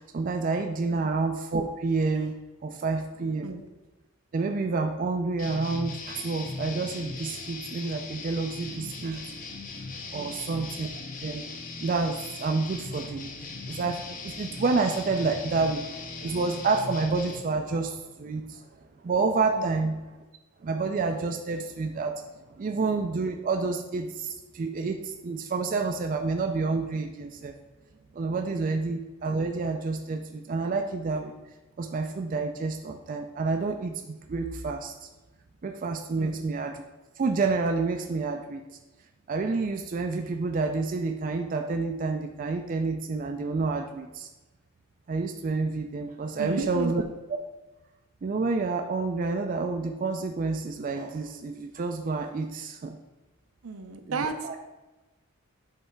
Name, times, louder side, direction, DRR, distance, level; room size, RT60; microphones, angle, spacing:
voice 1, 0.0-2.3 2.6-3.5 4.3-9.3 10.1-10.9 11.2-11.5 11.8-13.3 13.7-18.6 19.0-19.9 20.6-22.3 22.6-27.5 28.1-31.3 31.8-35.1 35.6-36.7 37.2-38.6 39.3-44.3 45.1-47.0 48.2-53.0 54.1-54.6, right 4 dB, 40° right, 5 dB, 0.3 m, -29 dB
sound 1, 5.4-17.4, left 3 dB, 40° left, 0.7 m, -39 dB
voice 2, 10.1-10.5 19.5-19.8 36.2-36.5 46.4-46.9 53.6-54.6, right 4 dB, 75° right, 7 dB, 0.6 m, -34 dB
7.9 x 3.3 x 4.5 m, 1.1 s
head